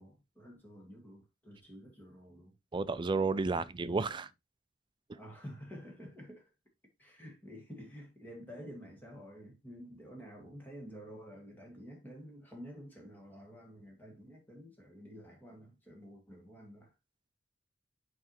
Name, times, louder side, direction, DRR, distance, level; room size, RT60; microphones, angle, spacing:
voice 1, 0.0-2.6 3.3-4.2 5.1-6.4 7.0-16.9, equal, 10° left, 2.1 m, -50 dB
voice 2, 2.7-4.3, right 4 dB, 25° right, 0.4 m, -31 dB
7.9 x 4.8 x 2.9 m
head